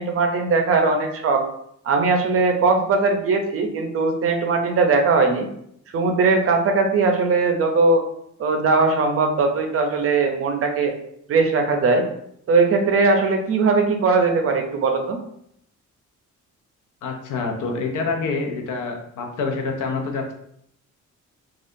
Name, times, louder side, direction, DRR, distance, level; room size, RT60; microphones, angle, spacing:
voice 1, 0.0-1.5 1.9-5.5 5.9-8.0 8.4-10.9 11.3-12.0 12.5-15.2, right 4 dB, 50° right, 4 dB, 0.5 m, -19 dB
voice 2, 17.0-20.3, left 4 dB, 80° left, 2 dB, 0.7 m, -26 dB
3.5 x 2.4 x 2.6 m, 0.71 s
cardioid pair, 160°, 30 cm